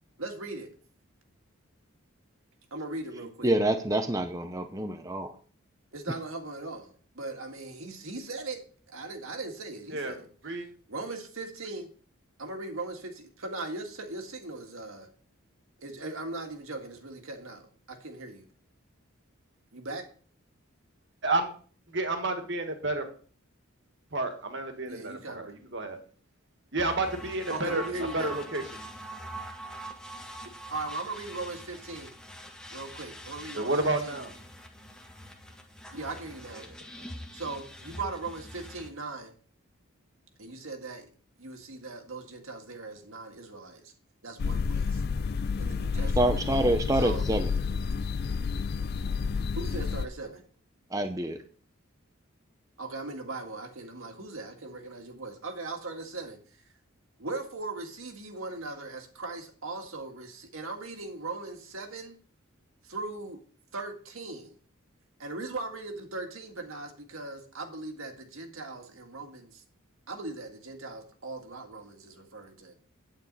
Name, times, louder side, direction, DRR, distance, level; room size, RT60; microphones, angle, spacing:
voice 1, 0.2-0.7 2.7-3.5 5.9-8.6 8.9-10.3 10.9-11.9 12.4-15.1 15.8-18.5 19.7-20.0 24.9-25.5 27.5-28.4 30.7-32.1 32.7-33.7 34.0-34.2 35.9-36.6 37.3-39.3 40.4-41.1 41.4-43.9 44.2-45.0 45.6-46.2 46.9-47.3 49.6-50.4 52.8-56.4 57.2-62.2 62.8-63.4 63.7-64.6 65.2-69.6 70.1-72.7, right 2 dB, 75° right, 4 dB, 1.9 m, -39 dB
voice 2, 3.4-5.3 46.2-47.5 50.9-51.4, right 1 dB, 15° right, 7 dB, 0.6 m, -27 dB
voice 3, 9.9-10.7 21.2-21.5 21.9-23.1 24.1-26.0 26.7-27.9 28.1-28.7 33.5-34.3 36.5-37.1, right 2 dB, 55° right, 6 dB, 1.7 m, -31 dB
sound 1, 26.8-38.9, right 1 dB, 5° left, 1.0 m, -44 dB
sound 2, 44.4-50.1, left 5 dB, 45° left, 0.4 m, -30 dB
9.1 x 8.9 x 4.0 m, 0.42 s
head